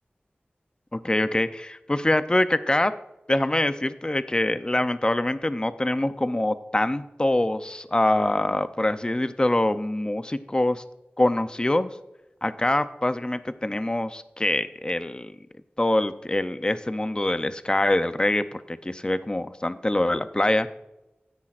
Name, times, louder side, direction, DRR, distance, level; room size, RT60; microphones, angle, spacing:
voice 1, 0.9-2.9 3.3-10.8 11.2-11.9 12.4-15.4 15.8-20.7, left 1 dB, 25° left, 11 dB, 0.6 m, -24 dB
13.0 x 9.8 x 2.5 m, 0.94 s
wide cardioid pair, 65°, 4 cm